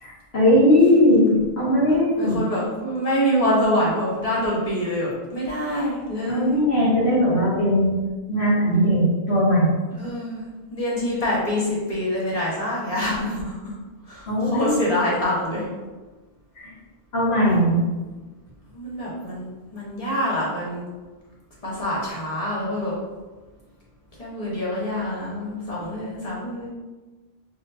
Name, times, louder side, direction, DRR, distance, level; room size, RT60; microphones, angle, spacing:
voice 1, 0.0-2.4 6.2-8.0 8.3-9.7 14.3-14.8 16.6-16.7 17.1-17.8, left 1 dB, 85° left, -8 dB, 2.0 m, -19 dB
voice 2, 2.2-6.6 10.0-13.5 14.1-15.6 18.7-19.4 19.7-20.8 21.6-22.9 24.2-26.7, equal, 35° left, -6 dB, 1.5 m, -25 dB
4.8 x 3.8 x 2.8 m, 1.3 s
omnidirectional pair, 1.0 m